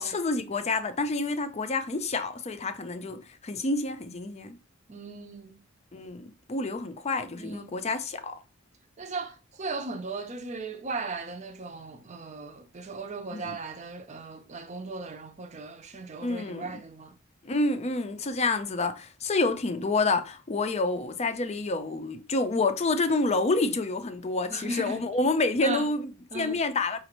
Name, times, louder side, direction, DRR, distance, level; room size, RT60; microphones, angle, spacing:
voice 1, 0.0-4.6 5.9-8.4 13.3-13.6 16.2-16.8 17.4-27.0, left 3 dB, 35° left, 0.5 m, -28 dB
voice 2, 4.9-5.6 7.4-7.7 9.0-17.1 24.5-25.0 25.6-25.9 26.3-26.6, right 3 dB, 35° right, 0.6 m, -37 dB
5.0 x 2.4 x 3.0 m
head